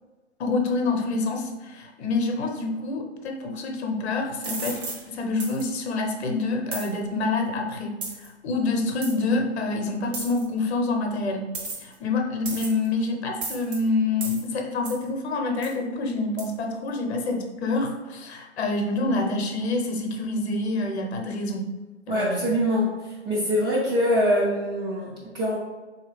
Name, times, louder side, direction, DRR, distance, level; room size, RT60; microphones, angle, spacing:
voice 1, 0.4-11.5 11.8-21.7 22.1-22.5, left 3 dB, 65° left, 3 dB, 0.8 m, -27 dB
sound 1, 4.4-5.0 5.4-5.6 6.7-6.9 8.0-8.3 9.0-9.1 10.1-10.4 11.5-11.9 12.5-12.9 13.4-13.8 14.2-14.4 14.9-15.0 15.6-15.8 16.4-16.5, right 3 dB, 45° right, 1.3 m, -33 dB
voice 2, 22.1-25.6, equal, 15° right, -6 dB, 0.4 m, -24 dB
3.5 x 2.8 x 3.3 m, 1.2 s
hypercardioid pair, 125°, 35 cm